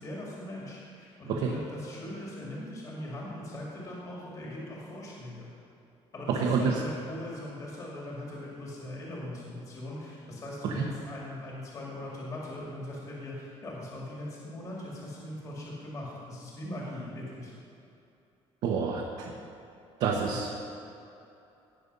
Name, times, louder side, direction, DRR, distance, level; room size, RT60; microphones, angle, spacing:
voice 1, 0.0-5.5 6.1-17.5 20.3-20.4, left 1 dB, 30° left, -4 dB, 2.4 m, -40 dB
voice 2, 6.3-6.7 10.6-10.9 18.6-19.3 20.0-20.5, right 5 dB, 65° right, -2 dB, 1.3 m, -28 dB
18.0 x 6.9 x 5.5 m, 2.7 s
cardioid pair, 180°, 12 cm